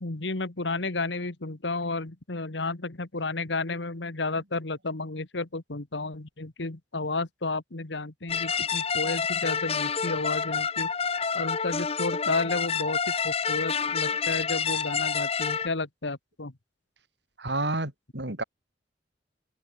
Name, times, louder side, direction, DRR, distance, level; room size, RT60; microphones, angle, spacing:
voice 1, 0.0-10.9 11.3-16.5, left 3 dB, 75° left, 1.6 m, -32 dB
sound 1, 8.3-15.7, left 6 dB, 35° left, 1.2 m, -28 dB
voice 2, 17.4-18.4, right 2 dB, 70° right, 4.9 m, -30 dB
open air
head